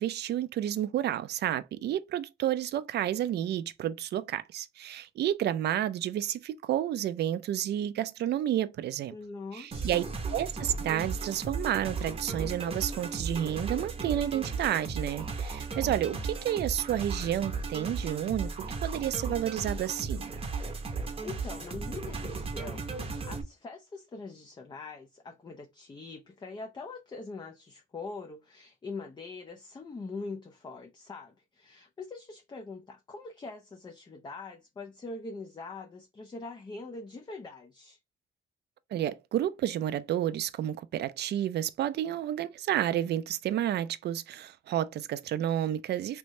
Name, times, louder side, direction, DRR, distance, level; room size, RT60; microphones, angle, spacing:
voice 1, 0.0-9.1 9.5-10.0 10.3-18.5 18.8-20.3 38.9-46.2, right 11 dB, 60° right, 0.4 m, -30 dB
voice 2, 9.1-10.1 21.2-38.0, left 3 dB, 20° left, 0.4 m, -43 dB
sound 1, 9.7-23.4, right 4 dB, 30° right, 0.7 m, -35 dB
3.2 x 2.6 x 3.0 m
cardioid pair, 90°, 20 cm